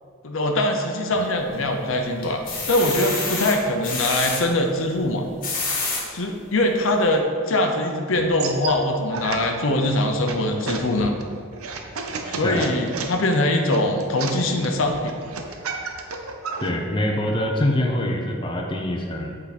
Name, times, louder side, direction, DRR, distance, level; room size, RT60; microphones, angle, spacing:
voice 1, 0.2-2.4 2.7-5.2 6.1-11.1 12.3-15.1, left 1 dB, 65° left, 3 dB, 0.8 m, -22 dB
sound 1, 1.1-1.8 2.2-4.4 5.2-6.0 6.6-6.7 7.1-7.2, left 3 dB, 40° left, 1.4 m, -28 dB
sound 2, 8.2-16.7, right 4 dB, 90° right, 0.7 m, -33 dB
voice 2, 16.6-19.4, left 1 dB, 25° left, 1 dB, 0.6 m, -24 dB
8.2 x 5.0 x 4.2 m, 2.2 s
head